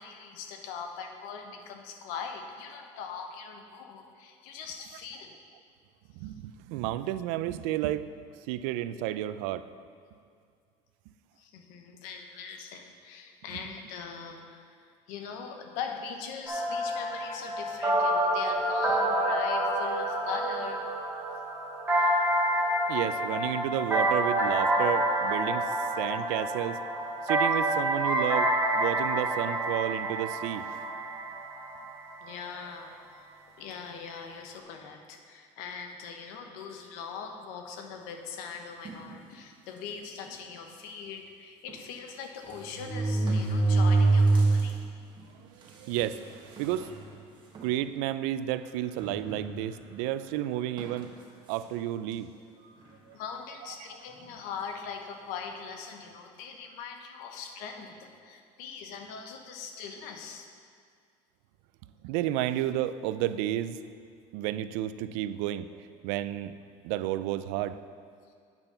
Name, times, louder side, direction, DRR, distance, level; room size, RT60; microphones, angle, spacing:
voice 1, 0.0-5.3 11.4-14.6 15.1-20.8 32.2-33.3 33.6-44.8 53.1-60.5, left 6 dB, 80° left, 4 dB, 1.0 m, -41 dB
voice 2, 6.1-8.1 8.5-9.7 22.9-26.8 27.2-30.7 45.4-46.9 47.6-51.1 51.5-52.3 53.1-53.2 53.8-53.9 62.0-63.8 64.3-66.5 66.8-67.8, right 13 dB, 85° right, 13 dB, 0.4 m, -32 dB
sound 1, 16.5-32.2, right 1 dB, 15° right, 1.8 m, -28 dB
sound 2, 38.9-39.1 39.9-40.0 40.3-40.4 41.7-41.8 42.5-44.7 45.2-45.3 46.1-46.2 46.6-46.9 47.5-47.7 49.0-49.8 50.8-51.0, right 3 dB, 30° right, 1.5 m, -25 dB
8.9 x 5.9 x 5.6 m, 2.2 s
cardioid pair, 130°, 15 cm